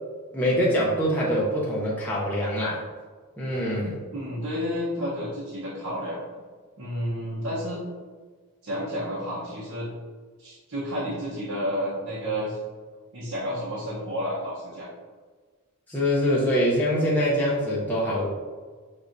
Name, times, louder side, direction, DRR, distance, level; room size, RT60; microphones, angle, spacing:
voice 1, 0.3-2.8 3.4-4.0 15.9-18.2, equal, 10° left, -7 dB, 0.6 m, -24 dB
voice 2, 4.1-6.2 6.8-7.8 8.6-9.9 10.4-12.6 13.1-14.9, equal, 65° right, -7 dB, 0.9 m, -31 dB
6.0 x 3.4 x 2.6 m, 1.5 s
head